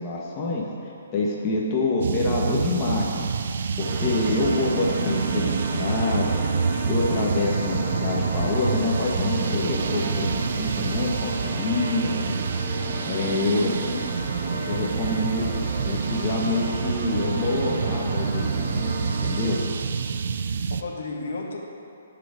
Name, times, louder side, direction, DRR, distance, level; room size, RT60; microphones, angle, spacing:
voice 1, 0.0-3.3 3.8-6.4 6.9-12.4 13.0-14.0 14.7-19.6, left 3 dB, 20° left, -4 dB, 1.3 m, -27 dB
sound 1, 2.0-20.8, right 6 dB, 60° right, 0.4 m, -28 dB
sound 2, 3.8-19.6, right 2 dB, 35° right, 1.5 m, -32 dB
voice 2, 12.6-13.4 19.8-21.6, left 3 dB, 70° left, 0 dB, 1.6 m, -36 dB
14.5 x 4.9 x 5.0 m, 2.7 s
hypercardioid pair, 160°, 0 cm